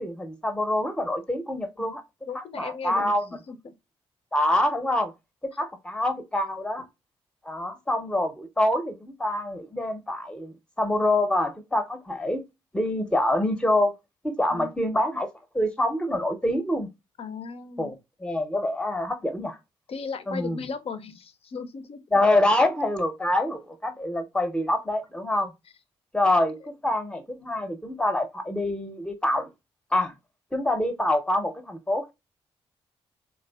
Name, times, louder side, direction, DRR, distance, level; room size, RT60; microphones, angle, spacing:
voice 1, 0.0-2.0 2.3-3.3 4.3-5.1 5.4-6.9 7.4-12.4 12.7-13.9 14.2-15.3 15.5-16.9 17.8-18.0 18.2-19.6 20.3-20.6 22.1-25.5 26.1-29.5 29.9-30.1 30.5-32.1, left 1 dB, 5° left, 0.6 m, -26 dB
voice 2, 2.3-3.1 3.5-3.7 14.5-14.7 17.2-17.9 19.9-22.0, left 5 dB, 50° left, 0.5 m, -36 dB
3.1 x 2.4 x 2.2 m
hypercardioid pair, 45°, 13 cm